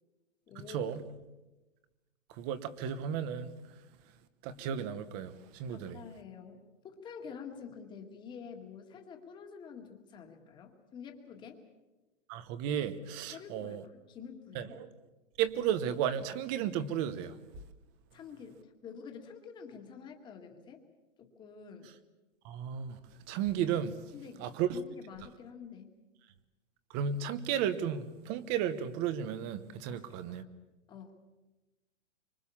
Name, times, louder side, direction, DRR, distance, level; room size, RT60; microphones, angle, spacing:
voice 1, 0.5-0.9 5.7-6.6 6.8-11.6 13.3-14.8 18.1-20.8 21.2-21.9 24.1-25.9 29.9-30.4 30.9-31.1, left 6 dB, 10° left, 2.0 m, -48 dB
voice 2, 2.4-3.5 4.4-6.0 12.3-13.8 14.5-14.9 15.4-17.3 22.4-23.0 23.3-24.0 24.4-24.8 26.9-30.4, right 9 dB, 20° right, 1.0 m, -33 dB
25.5 x 25.0 x 7.2 m
hypercardioid pair, 170°, 37 cm